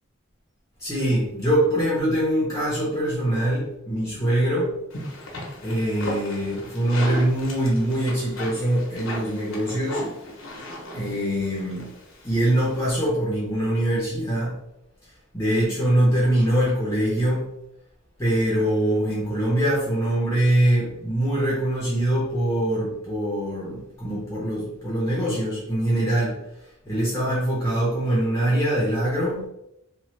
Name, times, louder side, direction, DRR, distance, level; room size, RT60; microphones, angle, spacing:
voice 1, 0.8-4.7 5.6-10.0 10.9-11.8 12.2-14.6 15.3-17.4 18.2-26.4 26.8-29.5, right 1 dB, 15° left, -6 dB, 0.7 m, -23 dB
sound 1, 4.9-12.9, left 1 dB, 85° left, 0.8 m, -36 dB
3.0 x 2.1 x 3.1 m, 0.81 s
head